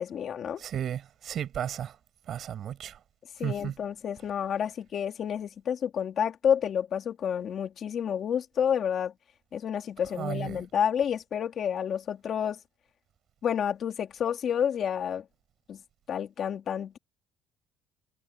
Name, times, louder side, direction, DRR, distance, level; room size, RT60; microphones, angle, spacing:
voice 1, 0.0-0.6 3.4-9.1 9.5-12.6 13.4-15.2 15.7-15.8 16.1-17.0, left 8 dB, 40° left, 2.6 m, -29 dB
voice 2, 0.6-2.0 2.3-3.0 3.4-3.7 10.1-10.7, right 10 dB, 40° right, 5.7 m, -34 dB
cardioid pair, 150°, 0 cm